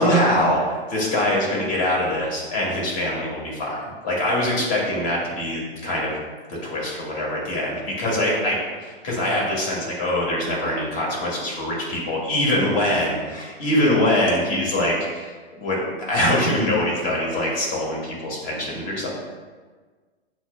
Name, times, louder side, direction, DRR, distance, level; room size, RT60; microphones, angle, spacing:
voice 1, 0.0-3.7 4.0-6.2 6.5-15.3 15.6-19.1, left 1 dB, 45° left, -4 dB, 1.3 m, -23 dB
6.2 x 2.1 x 2.2 m, 1.4 s
hypercardioid pair, 120°, 31 cm